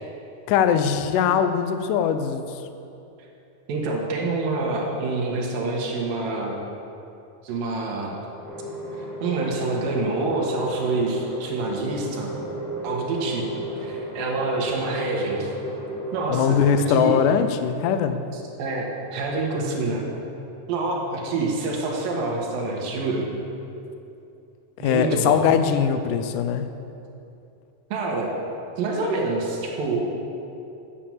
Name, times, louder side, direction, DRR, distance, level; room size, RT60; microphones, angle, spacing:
voice 1, 0.5-2.6 16.3-18.2 24.8-26.7, left 7 dB, 80° left, 9 dB, 2.1 m, -21 dB
voice 2, 3.7-6.6 7.4-8.2 9.0-12.3 12.8-15.5 16.1-17.2 18.6-20.0 20.7-23.3 24.8-25.4 27.9-28.3 28.8-30.2, right 3 dB, 80° right, -1 dB, 3.1 m, -27 dB
sound 1, 8.4-16.5, right 1 dB, ahead, 1.9 m, -34 dB
8.8 x 7.6 x 7.2 m, 2.7 s
omnidirectional pair, 4.0 m